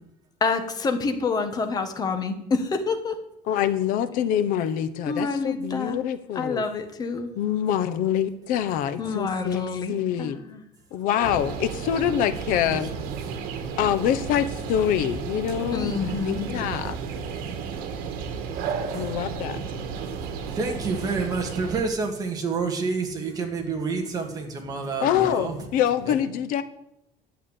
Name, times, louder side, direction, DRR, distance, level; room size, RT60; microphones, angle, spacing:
voice 1, 0.4-3.2 5.0-6.0 6.3-7.3 9.0-10.6 15.7-16.7, left 4 dB, 25° left, 6 dB, 1.5 m, -27 dB
voice 2, 3.5-6.6 7.4-9.6 9.9-10.4 10.9-12.9 13.8-17.0 18.9-19.6 25.0-26.6, left 10 dB, 65° left, 12 dB, 1.1 m, -25 dB
voice 3, 9.0-9.7 12.6-13.5 18.7-19.1 20.2-25.6 26.1-26.2, right 4 dB, 25° right, 2 dB, 2.3 m, -30 dB
sound 1, 11.2-21.8, right 6 dB, 80° right, 1.8 m, -33 dB
11.0 x 8.6 x 8.5 m, 0.82 s
cardioid pair, 175°, 15 cm